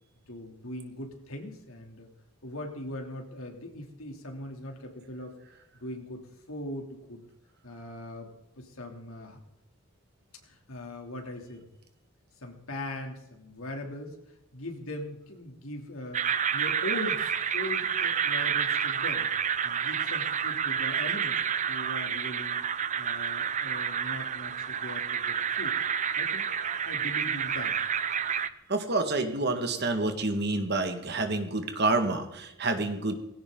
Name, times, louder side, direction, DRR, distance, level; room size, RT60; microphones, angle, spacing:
voice 1, 0.3-2.1 2.4-5.3 5.8-7.2 7.6-9.4 10.4-11.7 12.4-14.2 14.5-19.3 19.6-21.4 21.7-22.6 23.0-25.8 26.1-27.8 32.7-33.0, left 1 dB, 80° left, 2 dB, 3.0 m, -40 dB
sound 1, 16.1-28.5, right 8 dB, 35° right, 0.6 m, -29 dB
voice 2, 28.7-33.2, right 2 dB, 50° right, 6 dB, 1.8 m, -28 dB
19.0 x 16.0 x 3.9 m, 0.86 s
head